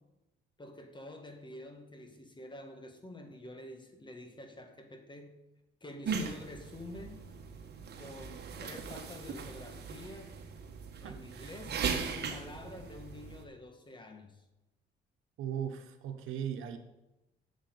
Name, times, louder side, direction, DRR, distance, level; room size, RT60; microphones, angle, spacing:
voice 1, 0.6-5.4 5.8-7.2 8.0-10.4 11.0-14.4, left 1 dB, 25° left, 5 dB, 2.1 m, -48 dB
sound 1, 6.0-13.4, right 5 dB, 55° right, 1.5 m, -39 dB
voice 2, 11.0-11.6 15.4-16.8, right 9 dB, 90° right, 7 dB, 1.2 m, -38 dB
8.1 x 7.3 x 8.5 m, 0.99 s
cardioid pair, 90°, 20 cm